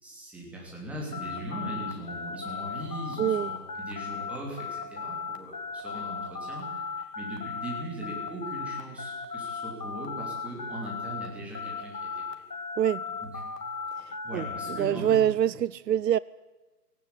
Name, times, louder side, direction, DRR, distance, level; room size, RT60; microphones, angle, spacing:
voice 1, 0.0-12.1 13.2-13.4 14.2-15.2, right 1 dB, 5° right, -3 dB, 3.2 m, -39 dB
sound 1, 1.1-11.3 11.5-14.8, left 5 dB, 70° left, 2.8 m, -36 dB
voice 2, 3.2-3.5 12.8-13.0 14.0-16.2, right 10 dB, 80° right, 20 dB, 0.6 m, -26 dB
17.5 x 17.5 x 9.8 m, 1.3 s
hypercardioid pair, 160°, 49 cm